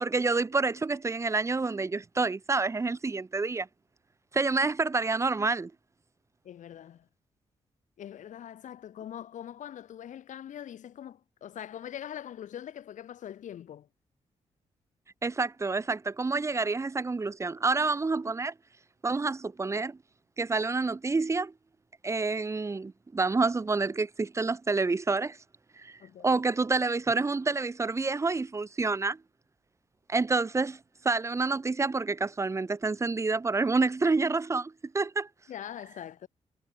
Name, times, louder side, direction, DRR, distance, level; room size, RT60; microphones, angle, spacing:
voice 1, 0.0-3.7 4.3-5.7 15.2-18.5 19.0-20.0 20.4-21.5 22.0-25.4 25.8-26.0 26.2-29.2 30.1-30.8 31.0-35.3, right 3 dB, 25° right, 0.7 m, -28 dB
voice 2, 6.4-7.1 8.0-13.9 26.0-26.4 35.5-36.3, left 10 dB, 90° left, 2.2 m, -42 dB
cardioid pair, 105°, 12 cm